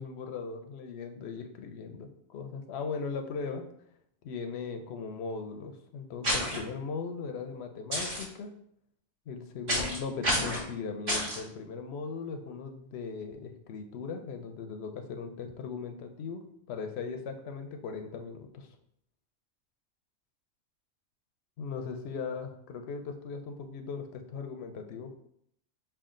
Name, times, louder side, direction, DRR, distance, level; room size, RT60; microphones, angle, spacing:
voice 1, 0.0-3.6 4.2-8.5 9.3-18.8 21.6-25.1, left 5 dB, 60° left, 5 dB, 0.8 m, -38 dB
sound 1, 6.2-6.6 7.9-8.2 9.7-10.0 10.2-10.6 11.1-11.4, equal, 40° right, 1.5 m, -29 dB
5.6 x 2.4 x 3.7 m, 0.69 s
omnidirectional pair, 1.4 m